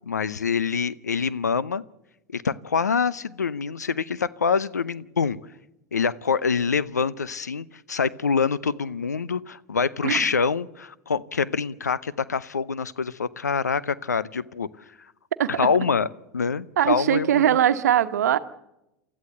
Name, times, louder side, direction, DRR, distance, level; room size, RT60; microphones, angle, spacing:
voice 1, 0.1-1.8 2.3-5.4 5.9-14.7 15.5-16.1 16.3-17.6, left 5 dB, 90° left, 18 dB, 0.7 m, -25 dB
voice 2, 16.8-18.4, right 10 dB, 75° right, 11 dB, 1.1 m, -21 dB
28.5 x 14.0 x 7.9 m, 0.90 s
hypercardioid pair, 80°, 9 cm